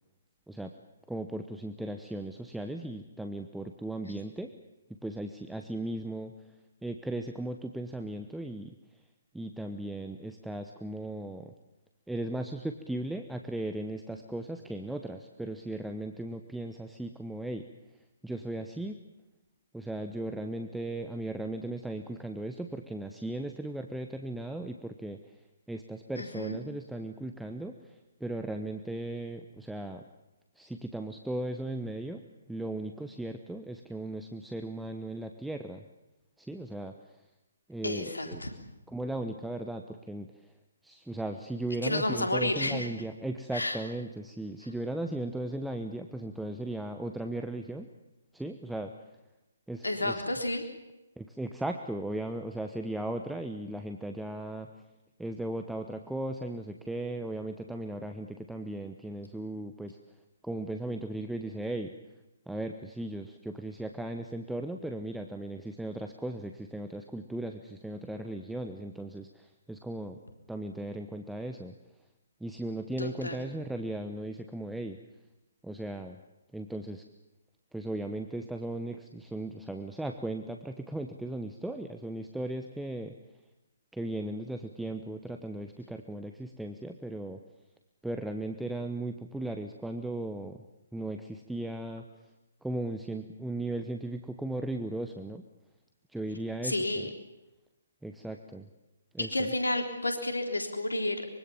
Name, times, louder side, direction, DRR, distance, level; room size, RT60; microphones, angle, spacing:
voice 1, 1.1-4.5 5.0-6.3 6.8-8.8 9.3-11.5 12.1-17.6 18.2-19.0 19.7-25.2 25.7-30.0 30.6-35.8 36.4-36.9 37.7-38.4 38.9-40.3 40.8-47.9 48.3-48.9 49.7-50.2 51.2-54.7 55.2-60.0 60.4-61.9 62.5-70.2 70.5-71.7 72.4-75.0 75.6-76.2 76.5-77.0 77.7-83.1 83.9-87.4 88.0-90.6 90.9-92.0 92.6-95.4 96.1-96.8 98.0-98.7 99.1-99.3, right 1 dB, ahead, 5 dB, 1.1 m, -37 dB
voice 2, 26.2-26.6 37.8-38.5 41.8-42.9 43.5-43.8 49.8-50.6 73.0-73.4 96.6-97.1 99.2-101.3, left 1 dB, 75° left, 5 dB, 3.7 m, -31 dB
24.5 x 23.5 x 7.2 m, 0.98 s
figure-of-eight pair, 135°, 0 cm